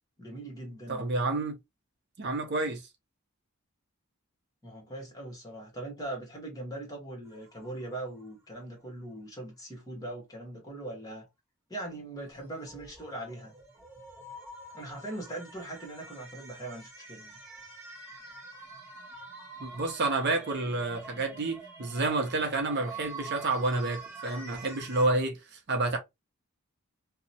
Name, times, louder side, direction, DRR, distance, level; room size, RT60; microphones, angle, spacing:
voice 1, 0.2-1.1 4.6-11.3 11.7-13.5 14.7-17.4, right 1 dB, 15° left, 0.9 m, -41 dB
voice 2, 0.9-1.5 2.2-2.8 19.6-26.0, right 2 dB, 50° right, 0.6 m, -29 dB
sound 1, 7.2-8.3 12.3-25.1, right 3 dB, 10° right, 0.9 m, -46 dB
2.7 x 2.0 x 2.6 m
head